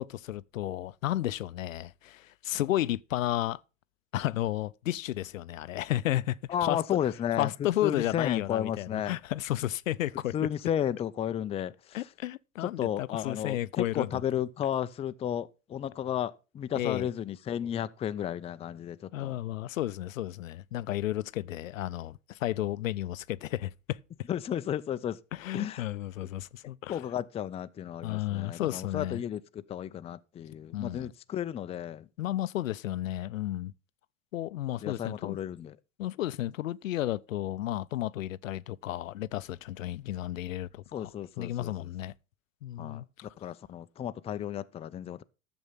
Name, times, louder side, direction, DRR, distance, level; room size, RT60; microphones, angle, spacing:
voice 1, 0.0-3.6 4.1-6.8 7.4-10.3 11.9-14.2 16.8-17.1 19.1-24.0 25.3-27.0 28.0-29.2 30.7-31.1 32.2-33.7 34.3-35.4 36.0-41.1 41.4-42.1 42.6-43.3, left 14 dB, 85° left, 0.5 m, -33 dB
voice 2, 6.5-7.5 7.8-9.1 10.3-12.0 12.6-19.3 24.3-25.2 25.5-25.9 26.9-32.1 34.8-35.8 40.9-41.9 42.8-45.2, left 10 dB, 15° left, 0.4 m, -33 dB
11.0 x 7.1 x 5.5 m
hypercardioid pair, 95°, 38 cm